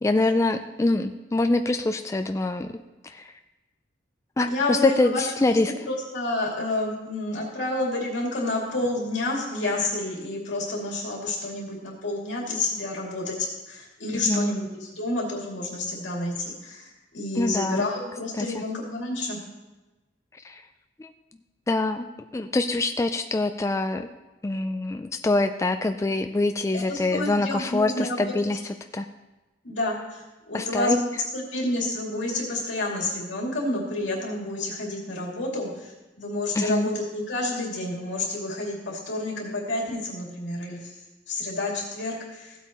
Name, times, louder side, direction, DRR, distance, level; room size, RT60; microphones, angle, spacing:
voice 1, 0.0-2.7 3.0-3.3 4.4-5.8 14.1-14.6 17.4-17.9 18.4-18.6 20.4-20.6 21.0-21.1 21.7-22.1 22.3-24.1 24.4-29.1 30.5-31.0 36.5-36.9, left 2 dB, 15° left, 7 dB, 0.3 m, -25 dB
voice 2, 4.5-16.9 17.1-19.4 26.7-28.3 29.6-31.1 31.3-35.9 36.2-40.9 41.3-42.5, left 2 dB, 80° left, -2 dB, 2.6 m, -29 dB
15.0 x 8.3 x 3.0 m, 1.1 s
head